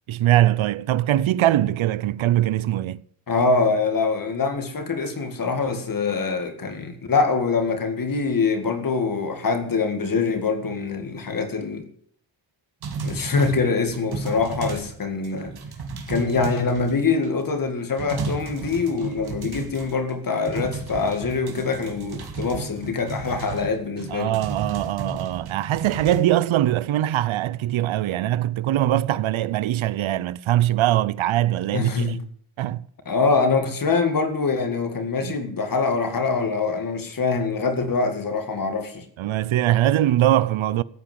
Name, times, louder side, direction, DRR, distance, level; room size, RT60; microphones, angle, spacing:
voice 1, 0.1-3.0 24.1-32.2 32.6-32.9 35.2-35.3 39.2-40.8, right 13 dB, 85° right, 0.7 m, -22 dB
voice 2, 3.3-11.9 13.0-15.5 16.1-24.3 31.7-32.2 33.1-39.1, left 4 dB, 45° left, 2.1 m, -24 dB
sound 1, 12.8-15.0 15.2-17.2 17.6-17.7 18.0-20.1 20.5-26.2, right 4 dB, 55° right, 2.4 m, -33 dB
14.5 x 8.7 x 7.6 m
wide cardioid pair, 145°, 46 cm